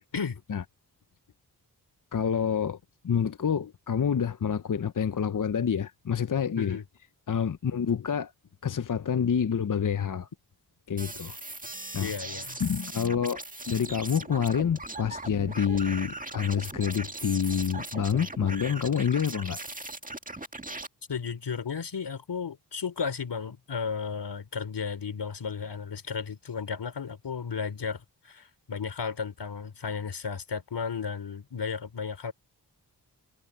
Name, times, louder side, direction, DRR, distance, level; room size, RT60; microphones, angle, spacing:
voice 1, 2.1-2.8 3.0-6.8 7.3-8.3 8.6-10.3 10.9-11.4 11.9-12.1 12.5-19.6, left 7 dB, 50° left, 0.8 m, -28 dB
sound 1, 11.0-20.9, right 2 dB, 20° right, 1.8 m, -39 dB
voice 2, 12.0-12.6 21.1-32.3, left 6 dB, 80° left, 3.7 m, -34 dB
cardioid pair, 45°, 41 cm